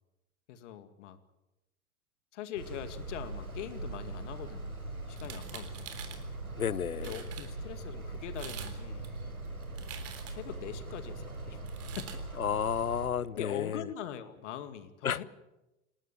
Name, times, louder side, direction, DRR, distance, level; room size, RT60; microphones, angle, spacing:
voice 1, 0.5-1.2 2.3-4.7 5.1-5.9 7.0-9.1 10.3-11.6 12.0-12.2 13.4-15.2, left 10 dB, 55° left, 11 dB, 2.3 m, -42 dB
sound 1, 2.6-13.1, right 2 dB, 85° right, 4.3 m, -41 dB
sound 2, 5.2-6.2 6.8-6.9 7.0-7.5 8.2-8.8 9.0-10.5 11.7-12.2, right 9 dB, 35° right, 3.6 m, -46 dB
voice 2, 6.6-7.2 12.4-13.9 15.0-15.2, left 8 dB, 80° left, 21 dB, 0.9 m, -32 dB
28.5 x 12.5 x 10.0 m, 0.96 s
figure-of-eight pair, 85°, 42 cm